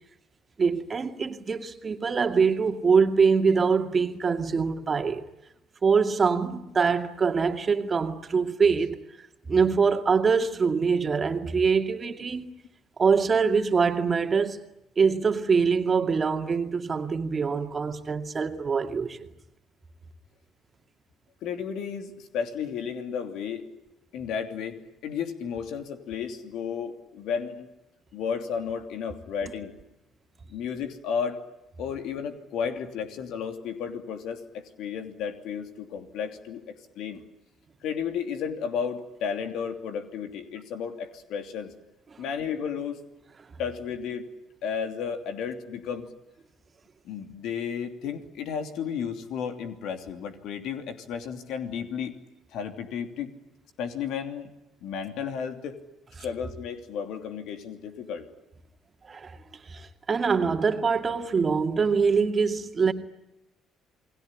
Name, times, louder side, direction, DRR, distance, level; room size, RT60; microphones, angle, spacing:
voice 1, 0.6-5.2 5.8-9.0 9.5-12.5 13.0-14.6 15.0-19.3 59.0-59.4 59.7-62.9, right 5 dB, 35° right, 2.3 m, -24 dB
voice 2, 21.4-23.6 24.1-27.7 28.1-29.7 30.5-31.4 31.8-37.2 37.8-41.7 42.2-43.0 43.6-44.2 44.6-46.1 47.0-52.1 52.5-53.3 53.8-54.5 54.8-55.8 56.2-58.3, left 7 dB, 65° left, 3.0 m, -33 dB
29.5 x 20.0 x 9.9 m
hypercardioid pair, 60°, 0 cm